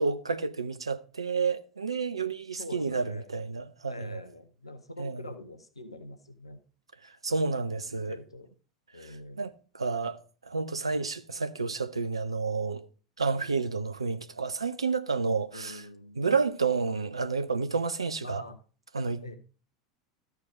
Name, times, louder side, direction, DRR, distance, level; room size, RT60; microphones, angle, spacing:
voice 1, 0.0-4.2 5.0-5.2 7.0-8.2 9.4-10.2 10.5-12.9 13.2-15.8 16.2-18.4 18.9-19.4, right 4 dB, 85° right, 0.5 m, -30 dB
voice 2, 2.6-3.3 3.9-6.6 7.9-8.5 8.9-9.4 13.3-13.8 15.5-16.2 18.2-18.6 19.2-19.4, left 2 dB, 85° left, 0.9 m, -45 dB
13.0 x 4.8 x 4.8 m
figure-of-eight pair, 80°, 3 cm